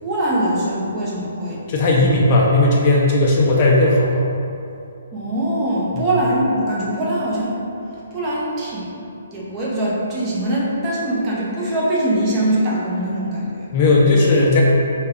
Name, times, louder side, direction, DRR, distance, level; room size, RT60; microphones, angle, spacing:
voice 1, 0.0-1.6 2.0-2.1 5.1-7.5 8.1-8.9 9.3-13.7, right 1 dB, 20° right, -7 dB, 0.7 m, -22 dB
voice 2, 1.7-4.2 5.9-6.1 13.7-14.6, left 2 dB, 35° left, -3 dB, 0.4 m, -15 dB
3.4 x 2.2 x 3.6 m, 2.7 s
hypercardioid pair, 160°, 0 cm